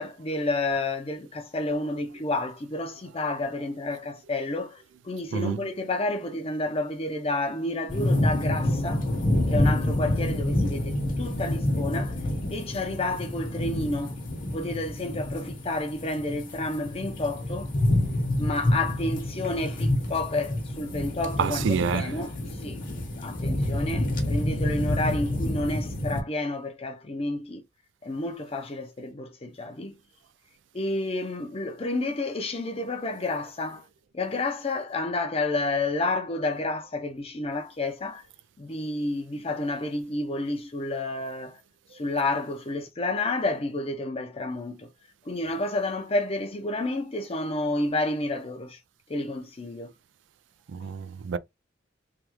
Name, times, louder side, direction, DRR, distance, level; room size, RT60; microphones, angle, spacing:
voice 1, 0.0-9.0 9.5-12.2 12.5-14.2 14.5-17.7 18.4-21.6 21.9-22.3 22.6-22.8 23.2-27.6 28.0-29.9 30.7-33.8 34.1-38.2 38.6-41.6 41.9-44.9 45.3-48.8 49.1-49.9, left 2 dB, 35° left, 0.6 m, -30 dB
sound 1, 7.9-26.2, left 1 dB, 50° left, 1.1 m, -28 dB
voice 2, 21.4-22.2 50.7-51.4, right 6 dB, 85° right, 0.4 m, -27 dB
3.4 x 2.3 x 3.0 m
head